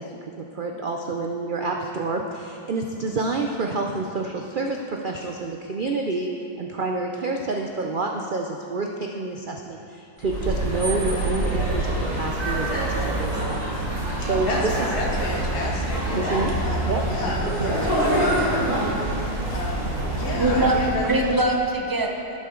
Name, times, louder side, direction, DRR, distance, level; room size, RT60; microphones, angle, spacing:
voice 1, 0.0-13.6 14.2-14.7 16.1-16.5 16.8-17.1 17.5-17.8, right 3 dB, 80° right, 2 dB, 0.4 m, -28 dB
sound 1, 10.2-21.3, right 1 dB, 65° right, 3.7 m, -26 dB
voice 2, 14.9-18.6 19.0-19.1 19.5-21.1, left 3 dB, 80° left, -4 dB, 2.3 m, -31 dB
voice 3, 20.4-22.4, right 2 dB, 20° right, 1 dB, 0.5 m, -22 dB
11.5 x 10.0 x 3.8 m, 2.6 s
omnidirectional pair, 1.7 m